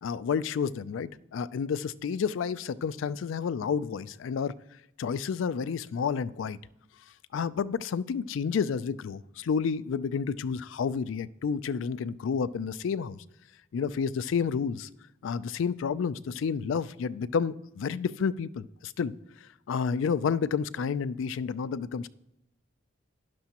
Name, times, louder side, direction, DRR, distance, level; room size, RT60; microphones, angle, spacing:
voice 1, 0.0-4.5 5.0-6.6 7.3-13.2 13.7-14.9 15.2-19.1 19.7-22.1, left 6 dB, 75° left, 16 dB, 0.3 m, -30 dB
11.5 x 11.0 x 2.9 m, 0.87 s
head